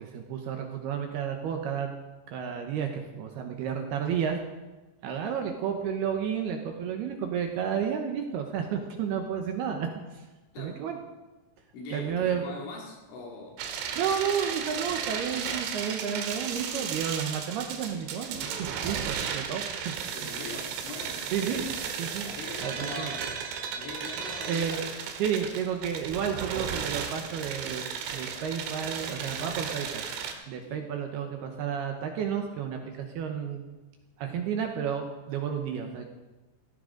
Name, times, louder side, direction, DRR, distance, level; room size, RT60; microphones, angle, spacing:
voice 1, 0.0-1.9 2.3-4.4 5.0-9.9 10.1-10.2 10.6-11.0 11.9-12.4 14.0-20.0 21.3-21.6 22.0-22.3 22.6-23.1 24.5-24.8 25.2-27.8 28.1-30.0 30.5-33.6 34.2-36.1, right 7 dB, 70° right, 4 dB, 2.6 m, -31 dB
voice 2, 10.5-10.9 11.7-13.6 20.1-21.8 22.3-23.4 23.8-24.8 30.6-30.9, left 3 dB, 75° left, 0 dB, 5.2 m, -41 dB
sound 1, 13.6-30.3, right 7 dB, 90° right, 3.8 m, -34 dB
17.5 x 15.5 x 3.9 m, 1.2 s
omnidirectional pair, 5.5 m